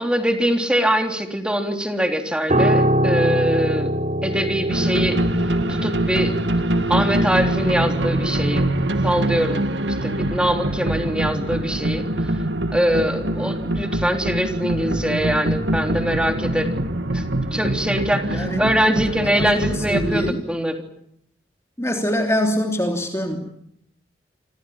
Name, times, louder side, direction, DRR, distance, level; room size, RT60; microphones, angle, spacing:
voice 1, 0.0-3.9 4.2-5.2 5.7-6.3 6.9-8.7 9.0-9.7 10.0-12.0 12.7-16.7 17.1-17.2 17.5-20.9, equal, 5° right, 4 dB, 3.6 m, -23 dB
Piano, 2.5-11.9 12.1-12.4, equal, 40° right, 4.2 m, -25 dB
sound 1, 4.7-20.3, right 1 dB, 75° right, 2.1 m, -24 dB
voice 2, 18.3-18.6 19.2-20.5 21.8-23.5, equal, 15° left, 3 dB, 3.0 m, -24 dB
29.0 x 26.0 x 5.8 m, 0.74 s
head